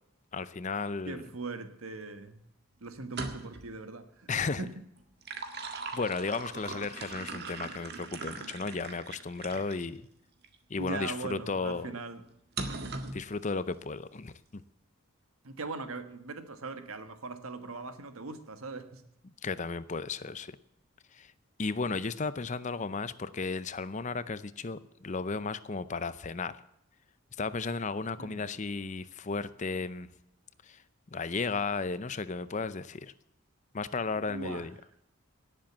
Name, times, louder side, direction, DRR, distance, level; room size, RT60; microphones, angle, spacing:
voice 1, 0.3-1.2 4.3-4.6 5.6-10.1 10.7-11.9 13.1-14.6 19.4-20.5 21.1-21.3 21.6-26.6 27.4-30.1 30.6-30.8 31.1-33.1 33.7-34.7, left 4 dB, 35° left, 0.6 m, -34 dB
voice 2, 1.0-2.4 2.8-4.7 10.8-12.2 15.4-19.0 28.2-28.5 34.1-34.7, right 3 dB, 80° right, 1.5 m, -40 dB
sound 1, 3.0-3.7 5.0-9.8 10.4-10.6 12.6-13.2, right 3 dB, 50° right, 1.7 m, -40 dB
18.0 x 7.7 x 7.3 m
head